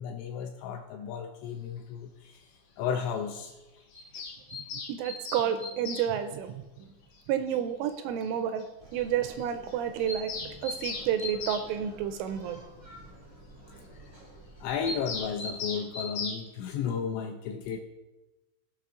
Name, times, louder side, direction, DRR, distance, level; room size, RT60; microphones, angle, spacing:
voice 1, 0.0-3.5 13.9-14.0 14.6-17.8, left 7 dB, 80° left, 3 dB, 2.6 m, -34 dB
Bird vocalization bird call bird song, 3.9-6.1 7.5-7.6 7.9-8.0 8.2-8.3 8.6-8.7 8.9-9.0 9.3-9.4 9.7-11.7 14.8-16.4, left 4 dB, 60° left, 1.7 m, -37 dB
voice 2, 4.7-6.9 7.3-8.7 8.9-10.3 10.6-12.6, right 9 dB, 85° right, 9 dB, 2.9 m, -30 dB
sound 1, 8.8-15.3, right 1 dB, 50° right, 0.9 m, -51 dB
16.0 x 5.7 x 3.7 m, 1.1 s
omnidirectional pair, 5.7 m